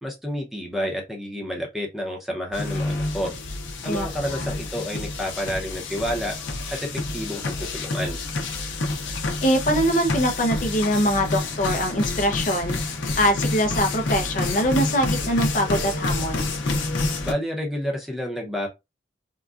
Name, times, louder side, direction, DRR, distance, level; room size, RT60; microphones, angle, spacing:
voice 1, 0.0-3.3 3.8-6.4 6.7-8.2 17.2-18.7, equal, ahead, 0.7 m, -29 dB
sound 1, 2.5-17.3, left 2 dB, 85° left, 0.7 m, -28 dB
voice 2, 3.8-4.6 9.1-12.8 13.2-16.5, equal, 45° left, 0.5 m, -23 dB
3.7 x 2.2 x 2.4 m
head